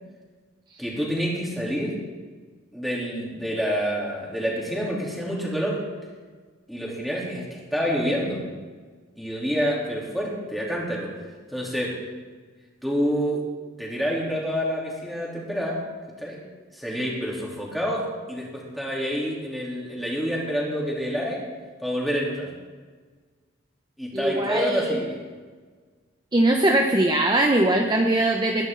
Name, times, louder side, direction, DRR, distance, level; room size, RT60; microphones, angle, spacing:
voice 1, 0.8-1.9 2.7-5.8 6.7-8.4 9.2-11.1 11.5-11.9 12.8-13.4 13.8-15.8 16.2-16.4 16.7-21.4 21.8-22.5 24.0-25.2, equal, ahead, -5 dB, 3.4 m, -27 dB
voice 2, 24.1-25.0 26.3-28.7, right 1 dB, 20° right, 2 dB, 0.8 m, -21 dB
21.0 x 10.5 x 3.9 m, 1.4 s
head